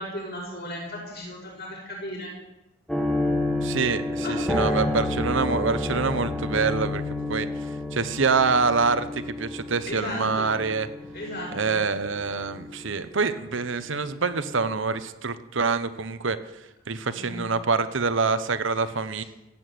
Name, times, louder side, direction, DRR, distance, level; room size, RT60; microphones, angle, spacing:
voice 1, 0.0-2.3 4.2-4.7 5.8-6.0 9.9-10.5 11.1-11.8 17.1-17.5 19.2-19.3, left 1 dB, 50° left, -1 dB, 6.1 m, -35 dB
sound 1, 2.9-13.4 13.7-13.8 14.4-14.6, left 1 dB, 5° left, 1.4 m, -30 dB
voice 2, 3.6-7.0 7.3-7.5 7.9-10.9 11.5-16.4 16.9-19.2, right 4 dB, 60° right, 12 dB, 0.9 m, -25 dB
15.5 x 8.5 x 9.3 m, 0.96 s
head